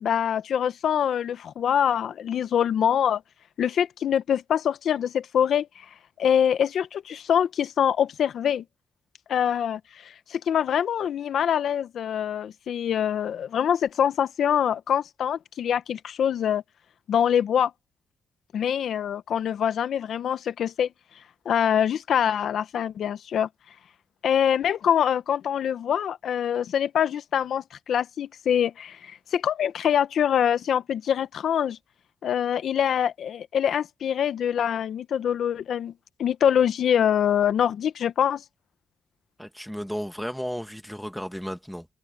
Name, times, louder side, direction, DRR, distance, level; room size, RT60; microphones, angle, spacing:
voice 1, 0.0-3.2 3.6-5.9 6.2-8.6 9.3-16.6 17.1-17.7 18.5-20.9 21.4-23.5 24.2-31.8 32.2-35.9 36.2-38.4, left 9 dB, 75° left, 1.0 m, -24 dB
voice 2, 39.4-41.9, equal, ahead, 1.8 m, -34 dB
cardioid pair, 70°, 0 cm